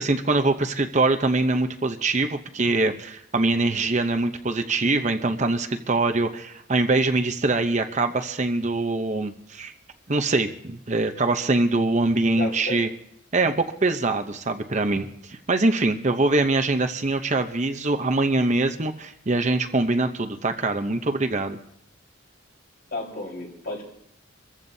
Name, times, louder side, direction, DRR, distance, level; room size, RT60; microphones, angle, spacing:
voice 1, 0.0-9.7 10.1-12.9 13.3-21.6, right 2 dB, 35° right, 7 dB, 0.7 m, -23 dB
voice 2, 12.4-12.8 22.9-23.9, left 2 dB, 50° left, 0 dB, 4.5 m, -32 dB
26.0 x 14.5 x 2.7 m, 0.74 s
head